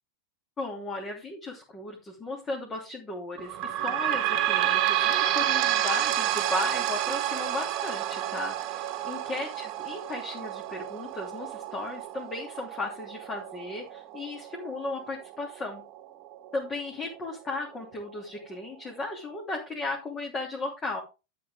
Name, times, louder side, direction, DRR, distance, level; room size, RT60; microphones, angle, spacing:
voice 1, 0.6-15.8 16.5-21.0, left 2 dB, 20° left, 0 dB, 3.0 m, -35 dB
sound 1, 3.4-16.5 17.1-17.2 17.5-17.6 18.4-18.5, right 12 dB, 35° right, 1.7 m, -30 dB
12.0 x 7.6 x 3.6 m, 0.28 s
figure-of-eight pair, 90°, 0 cm